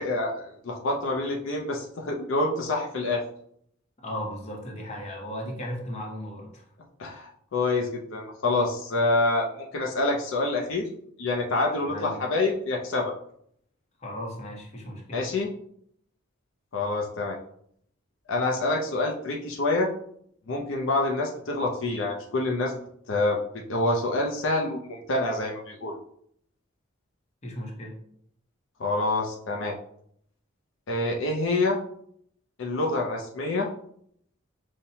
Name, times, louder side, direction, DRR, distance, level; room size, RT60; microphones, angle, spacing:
voice 1, 0.0-3.2 7.0-10.9 11.2-13.1 15.1-15.5 16.7-17.4 18.3-19.9 20.5-22.8 23.1-25.9 28.8-29.7 30.9-31.8 32.6-33.7, left 2 dB, 70° left, 0 dB, 0.5 m, -27 dB
voice 2, 4.0-6.6 11.8-12.2 14.0-15.3 27.4-27.9, equal, 35° left, 0 dB, 0.8 m, -36 dB
5.5 x 2.1 x 2.7 m, 0.68 s
head